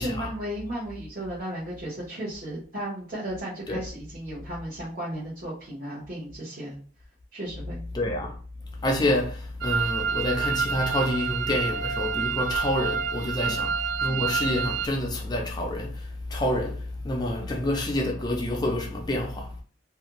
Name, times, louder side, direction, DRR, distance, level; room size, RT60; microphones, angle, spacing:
voice 1, 0.0-6.8 7.3-7.8 13.4-13.6 17.4-17.5, right 1 dB, 45° right, 1.0 m, -35 dB
voice 2, 7.9-8.4 8.8-19.5, left 1 dB, 20° left, 0.4 m, -28 dB
sound 1, 9.6-14.9, right 6 dB, 90° right, 0.4 m, -28 dB
2.5 x 2.2 x 2.9 m
head